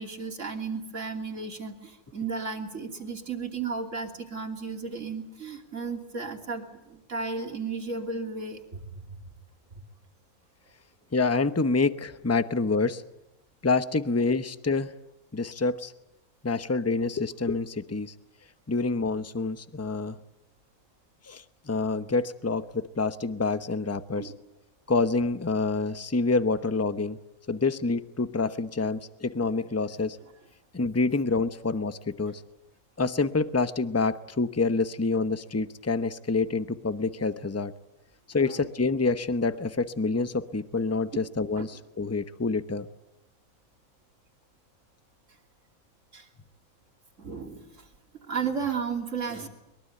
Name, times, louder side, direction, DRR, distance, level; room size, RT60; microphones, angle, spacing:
voice 1, 0.0-9.2 9.7-9.8 24.2-24.3 38.4-38.6 41.5-41.7 46.1-46.3 47.2-47.9 48.2-49.5, right 5 dB, 55° right, 3 dB, 3.3 m, -34 dB
voice 2, 11.1-13.0 13.6-14.9 15.3-15.9 16.4-18.1 18.7-20.2 21.2-24.3 24.9-27.2 27.5-30.2 30.7-32.4 33.0-37.7 38.3-42.9, left 3 dB, 15° left, 12 dB, 0.7 m, -27 dB
23.0 x 22.5 x 9.2 m, 0.90 s
omnidirectional pair, 1.6 m